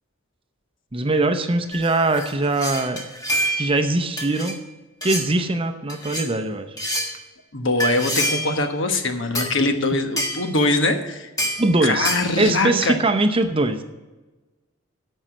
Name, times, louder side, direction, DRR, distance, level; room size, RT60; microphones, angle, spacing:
voice 1, 0.9-3.1 3.6-4.6 5.0-6.8 11.6-13.8, right 2 dB, 25° right, 7 dB, 0.7 m, -22 dB
sound 1, 1.7-3.8 4.2-4.6 5.0-5.3 5.9-6.3 6.8-7.1 7.8-8.6 9.3-9.5 10.2-10.5 11.4-11.7 12.0-12.3, equal, 15° left, 1.4 m, -26 dB
voice 2, 7.5-11.3 11.8-13.0, left 2 dB, 60° left, 6 dB, 1.2 m, -22 dB
13.5 x 5.5 x 6.4 m, 1.2 s
head